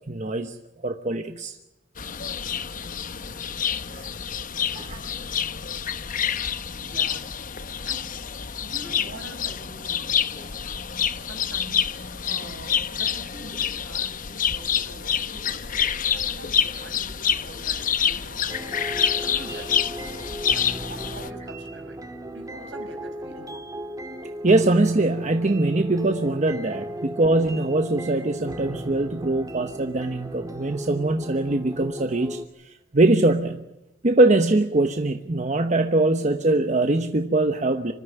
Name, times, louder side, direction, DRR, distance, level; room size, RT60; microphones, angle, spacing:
voice 1, 0.1-0.6 0.8-1.6 3.9-4.1 4.7-5.0 24.4-33.6 34.0-37.9, right 2 dB, 40° right, 6 dB, 1.0 m, -22 dB
sound 1, 2.0-21.3, left 8 dB, 45° left, 0.9 m, -27 dB
voice 2, 6.8-7.3 7.8-8.1 8.6-10.6 11.1-18.6 19.2-22.0 22.3-23.6, right 1 dB, 75° right, 5 dB, 5.4 m, -44 dB
sound 2, 18.5-32.5, right 1 dB, 20° right, 1.7 m, -36 dB
26.0 x 13.5 x 9.3 m, 0.96 s
head